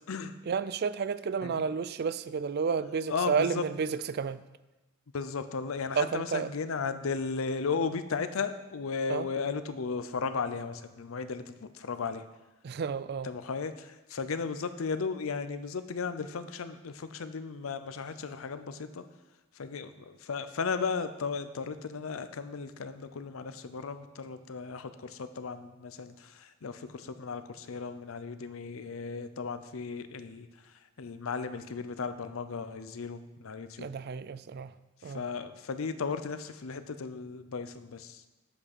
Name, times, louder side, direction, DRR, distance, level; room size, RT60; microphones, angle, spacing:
voice 1, 0.5-4.4 6.0-6.5 9.1-9.3 12.6-13.3 33.8-34.7 35.0-35.2, right 6 dB, 50° right, 15 dB, 0.4 m, -31 dB
voice 2, 3.1-3.7 5.1-12.2 13.2-19.0 19.5-33.9 35.0-38.3, left 5 dB, 75° left, 11 dB, 0.6 m, -35 dB
7.8 x 6.1 x 6.0 m, 1.1 s
head